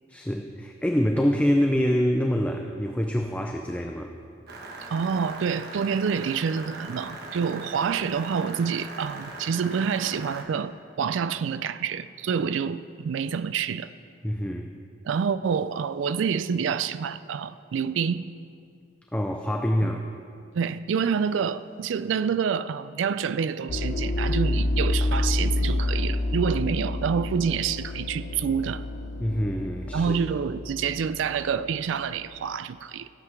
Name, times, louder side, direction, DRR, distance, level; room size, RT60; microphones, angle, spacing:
voice 1, 0.1-4.1 14.2-14.7 19.1-20.0 29.2-30.2, equal, 5° left, 3 dB, 0.5 m, -25 dB
sound 1, 4.5-10.4, right 2 dB, 55° right, 1.3 m, -40 dB
voice 2, 4.9-13.9 15.0-18.3 19.8-19.9 20.5-28.8 29.9-33.1, right 6 dB, 75° right, 14 dB, 0.4 m, -27 dB
sound 2, 23.7-32.4, left 1 dB, 60° left, 0.9 m, -28 dB
14.5 x 7.7 x 5.9 m, 2.4 s
head